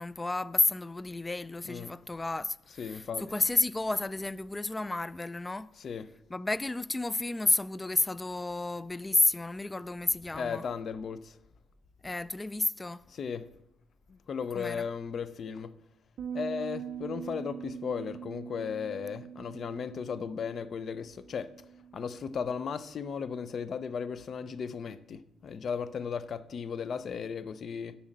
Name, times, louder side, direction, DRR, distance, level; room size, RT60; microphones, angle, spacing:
voice 1, 0.0-5.7 6.3-10.6 12.0-13.0 14.5-14.9, left 2 dB, 20° left, 0.3 m, -31 dB
voice 2, 2.8-3.2 5.8-6.1 10.3-11.4 13.1-13.4 14.1-15.7 16.3-21.5 21.9-28.0, left 6 dB, 55° left, 0.6 m, -36 dB
sound 1, 16.2-22.4, right 8 dB, 65° right, 0.6 m, -43 dB
7.3 x 7.0 x 6.6 m
cardioid pair, 90°, 0 cm